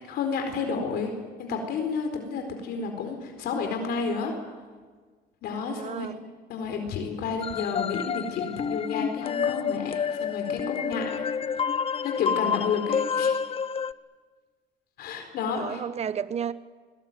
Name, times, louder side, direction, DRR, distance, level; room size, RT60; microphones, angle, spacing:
voice 1, 0.1-1.1 1.4-4.3 5.4-6.1 6.5-11.2 12.0-13.4 15.0-15.8, left 5 dB, 70° left, 4 dB, 4.4 m, -31 dB
voice 2, 5.6-6.2 15.5-16.5, right 8 dB, 40° right, 14 dB, 1.0 m, -33 dB
sound 1, 7.4-13.9, left 6 dB, 35° left, 0.8 m, -29 dB
25.0 x 21.0 x 9.3 m, 1.5 s
cardioid pair, 110°, 17 cm